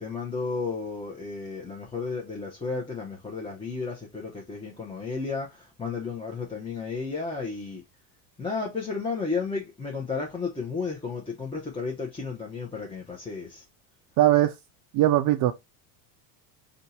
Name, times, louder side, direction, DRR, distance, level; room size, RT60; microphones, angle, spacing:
voice 1, 0.0-5.5 5.8-7.8 8.4-13.6, left 4 dB, 10° left, 0.9 m, -33 dB
voice 2, 14.2-14.5 14.9-15.5, right 14 dB, 45° right, 0.4 m, -20 dB
2.6 x 2.5 x 4.1 m
supercardioid pair, 95°, 50 cm